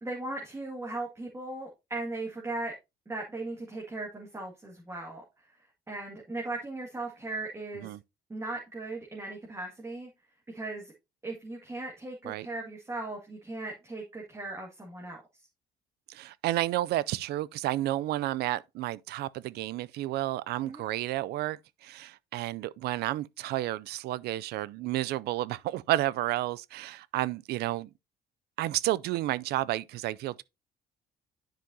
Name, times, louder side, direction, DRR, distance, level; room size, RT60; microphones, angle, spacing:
voice 1, 0.0-2.7 3.1-5.2 5.9-7.9 8.3-10.1 10.5-10.9 11.2-15.2 20.7-20.9, right 2 dB, 15° right, 2.0 m, -38 dB
voice 2, 16.1-27.9 28.6-30.4, right 15 dB, 75° right, 0.4 m, -31 dB
10.0 x 5.7 x 2.7 m
cardioid pair, 110°, 17 cm